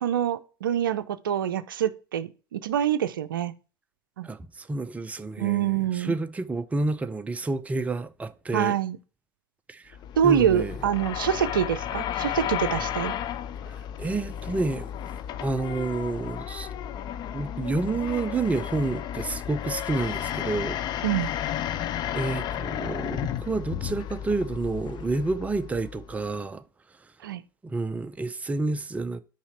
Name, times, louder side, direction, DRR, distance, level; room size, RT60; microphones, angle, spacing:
voice 1, 0.0-3.5 4.2-4.3 5.4-6.2 8.5-9.0 10.2-13.1 21.0-21.3 27.2-27.4, right 10 dB, 75° right, 0.5 m, -25 dB
voice 2, 4.2-8.8 9.7-10.0 10.2-10.7 13.7-14.9 15.4-16.7 17.3-20.8 22.1-26.6 27.6-29.2, right 3 dB, 10° right, 0.5 m, -29 dB
sound 1, 9.9-26.3, left 10 dB, 40° left, 0.5 m, -33 dB
5.6 x 4.8 x 4.2 m
figure-of-eight pair, 80°, 11 cm